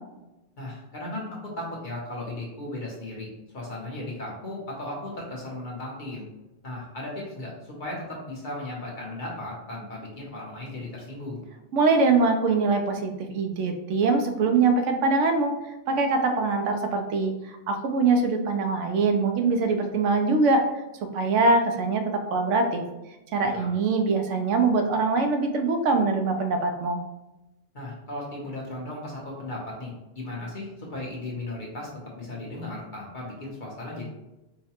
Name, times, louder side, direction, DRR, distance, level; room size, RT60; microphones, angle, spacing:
voice 1, 0.6-3.3 3.5-6.3 6.6-11.4 23.4-23.7 27.7-31.9 32.2-34.1, left 1 dB, 45° left, -3 dB, 1.0 m, -36 dB
voice 2, 11.7-15.5 15.9-20.6 21.1-22.8 23.3-27.0, right 3 dB, 85° right, 5 dB, 0.9 m, -23 dB
4.6 x 2.2 x 2.9 m, 0.99 s
omnidirectional pair, 1.2 m